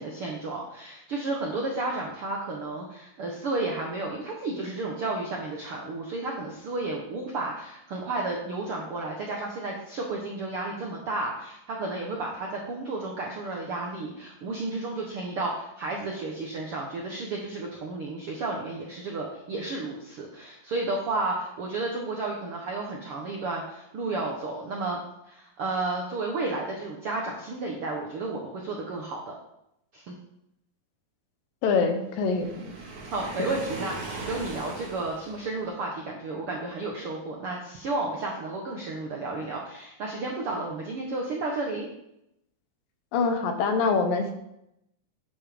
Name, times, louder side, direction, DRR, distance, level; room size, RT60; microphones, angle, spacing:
voice 1, 0.0-25.0 25.3-29.3 29.9-30.1 33.1-41.9, right 2 dB, 65° right, 0 dB, 1.3 m, -32 dB
voice 2, 31.6-32.7 43.1-44.3, left 4 dB, 75° left, 6 dB, 2.6 m, -25 dB
Waves surf, 32.2-35.7, right 3 dB, 45° right, 1.2 m, -39 dB
9.5 x 7.8 x 5.1 m, 0.82 s
omnidirectional pair, 4.2 m